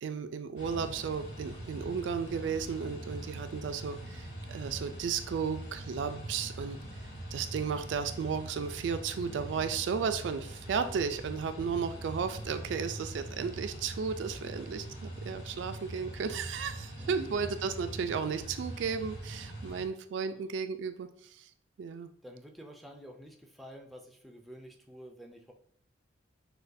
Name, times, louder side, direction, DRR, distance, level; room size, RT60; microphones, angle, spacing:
voice 1, 0.0-6.8 7.3-21.5 21.8-22.1, right 6 dB, 70° right, 9 dB, 0.3 m, -34 dB
sound 1, 0.6-19.8, right 1 dB, 70° left, 1.3 m, -43 dB
voice 2, 16.9-17.4 20.2-20.5 22.2-25.5, equal, ahead, 2 dB, 0.4 m, -50 dB
6.2 x 2.2 x 2.6 m, 0.63 s
head